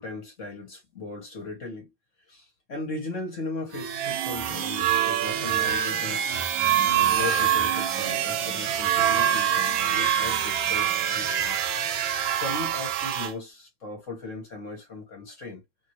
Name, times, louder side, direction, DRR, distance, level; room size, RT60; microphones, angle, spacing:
voice 1, 0.0-1.9 2.3-6.3 6.8-15.6, left 3 dB, 45° left, 1.2 m, -37 dB
sound 1, 3.7-13.3, right 10 dB, 80° right, 1.4 m, -25 dB
3.0 x 2.6 x 2.8 m
omnidirectional pair, 2.2 m